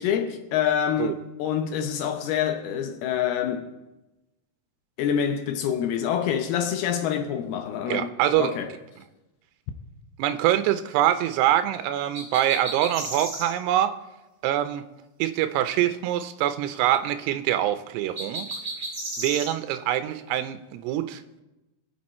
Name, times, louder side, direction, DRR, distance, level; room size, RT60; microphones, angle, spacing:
voice 1, 0.0-3.7 5.0-8.1 8.4-8.7, left 9 dB, 75° left, 2.6 m, -26 dB
voice 2, 7.9-8.5 10.2-13.9 14.4-14.8 15.2-18.5 19.2-21.2, right 12 dB, 80° right, 2.7 m, -24 dB
sound 1, 12.1-13.5 18.1-19.5, right 2 dB, 20° right, 3.1 m, -33 dB
23.5 x 7.9 x 4.3 m
omnidirectional pair, 4.8 m